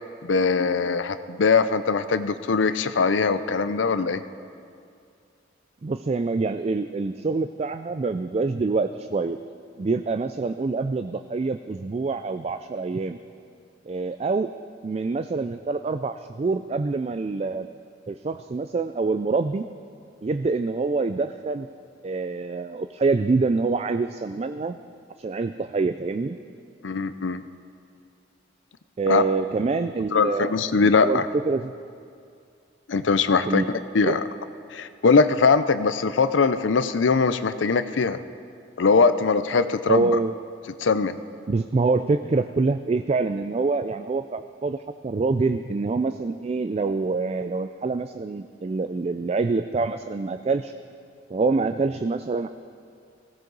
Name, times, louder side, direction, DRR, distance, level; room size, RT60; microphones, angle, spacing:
voice 1, 0.2-4.2 26.8-27.4 29.1-29.2 30.1-31.3 32.9-33.6 33.9-34.2 34.7-38.2 38.8-40.1 40.8-41.2, left 4 dB, 85° left, 11 dB, 0.6 m, -21 dB
voice 2, 5.8-9.4 9.8-13.2 13.9-14.5 14.8-17.7 18.1-19.6 20.2-21.7 22.0-24.8 25.2-26.4 29.0-31.2 31.5-31.7 33.5-33.7 34.0-34.2 39.9-40.3 41.5-44.8 45.0-50.7 51.3-52.5, right 3 dB, 35° right, 10 dB, 0.3 m, -26 dB
20.0 x 16.0 x 4.0 m, 2.3 s
head